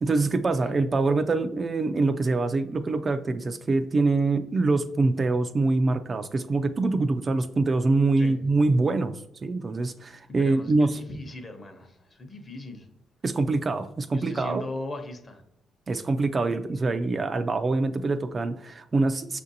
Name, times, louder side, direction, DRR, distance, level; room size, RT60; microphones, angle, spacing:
voice 1, 0.0-11.0 13.2-14.7 15.9-19.4, right 3 dB, 35° right, 8 dB, 0.3 m, -25 dB
voice 2, 10.4-12.9 14.1-15.4, left 1 dB, 30° left, 5 dB, 0.8 m, -38 dB
5.8 x 2.5 x 2.7 m, 0.78 s
cardioid pair, 90°, 0 cm